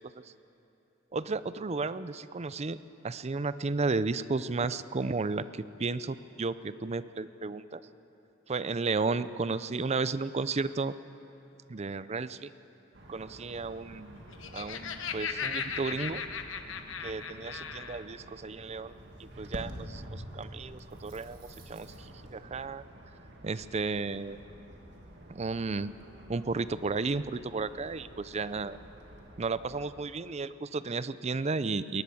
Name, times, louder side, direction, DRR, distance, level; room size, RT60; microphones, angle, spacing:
voice 1, 1.1-2.8 3.0-7.8 8.5-10.9 11.7-12.5 13.1-14.2 14.5-16.2 17.0-18.9 19.2-22.8 23.4-24.4 25.3-25.9 26.3-28.8 29.4-32.0, right 4 dB, 35° right, 15 dB, 0.5 m, -33 dB
sound 1, 12.9-30.0, equal, 65° right, 2.3 m, -48 dB
Laughter, 14.2-18.0, left 6 dB, 80° left, 1.1 m, -37 dB
sound 2, 20.7-22.3, right 7 dB, 85° right, 4.7 m, -59 dB
21.5 x 19.0 x 7.1 m, 3.0 s
head